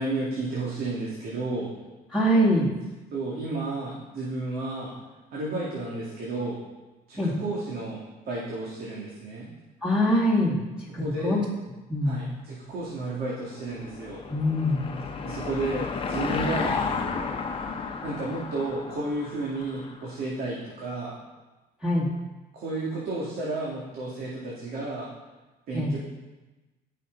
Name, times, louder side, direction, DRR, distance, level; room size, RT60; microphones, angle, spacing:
voice 1, 0.0-1.7 3.1-4.9 5.3-6.6 7.1-9.5 10.9-11.5 12.0-14.2 15.2-16.8 18.0-21.2 22.5-25.1 25.7-26.0, right 2 dB, 65° right, -5 dB, 2.3 m, -32 dB
voice 2, 2.1-2.7 7.2-7.3 9.8-10.6 10.9-11.4 11.9-12.2 14.3-14.9 21.8-22.1 25.7-25.9, equal, 5° right, -4 dB, 2.0 m, -23 dB
Car passing by / Engine, 13.3-20.1, left 4 dB, 30° left, 1.0 m, -32 dB
13.5 x 5.9 x 4.0 m, 1.1 s
cardioid pair, 110°, 17 cm